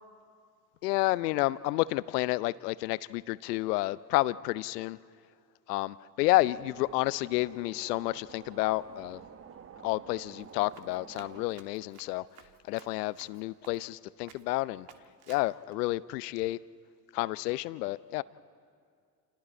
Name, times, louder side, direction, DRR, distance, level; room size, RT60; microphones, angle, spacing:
voice 1, 0.8-5.0 5.7-9.2 9.8-12.3 12.6-14.9 15.3-16.6 17.1-18.2, left 19 dB, 70° left, 18 dB, 0.7 m, -30 dB
sound 1, 6.2-11.5, right 7 dB, 25° right, 1.0 m, -50 dB
Run, 10.4-14.0 14.3-14.6 14.9-15.7, right 9 dB, 50° right, 1.5 m, -56 dB
29.5 x 28.0 x 4.4 m, 2.2 s
figure-of-eight pair, 65°, 50 cm